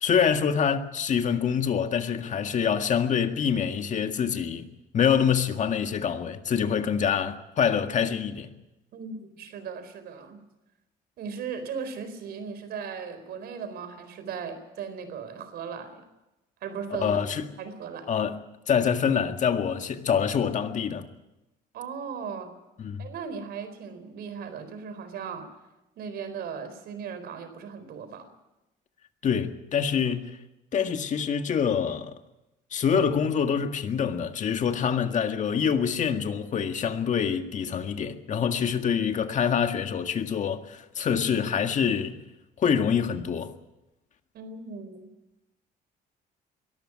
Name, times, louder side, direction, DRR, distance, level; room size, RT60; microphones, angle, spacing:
voice 1, 0.0-4.7 4.9-8.5 17.0-17.5 18.1-18.4 18.7-21.1 22.8-23.1 29.2-30.4 30.7-32.1 32.7-42.2 42.6-43.5, left 7 dB, 45° left, 1.8 m, -25 dB
voice 2, 8.9-10.4 11.2-16.1 16.6-17.1 17.6-18.1 21.7-22.5 23.0-25.5 26.0-28.3 44.3-45.1, right 6 dB, 70° right, 4.3 m, -37 dB
22.5 x 13.5 x 9.8 m
cardioid pair, 110°, 17 cm